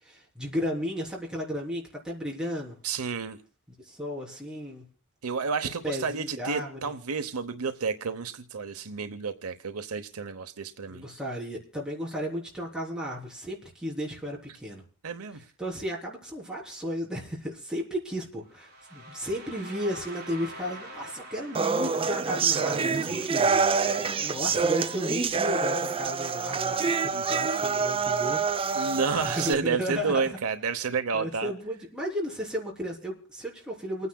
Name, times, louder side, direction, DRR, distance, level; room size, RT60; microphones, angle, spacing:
voice 1, 0.0-2.8 3.8-4.8 5.8-6.9 10.9-14.8 15.6-30.3 31.1-34.1, equal, 5° right, 3.5 m, -34 dB
voice 2, 2.8-3.4 5.2-11.1 15.0-15.5 22.6-24.4 27.1-27.2 28.7-31.5, right 5 dB, 85° right, 0.9 m, -31 dB
sound 1, 18.5-24.4, right 1 dB, 45° right, 4.4 m, -46 dB
sound 2, 21.5-29.5, right 5 dB, 25° right, 0.5 m, -26 dB
29.0 x 9.7 x 2.3 m
head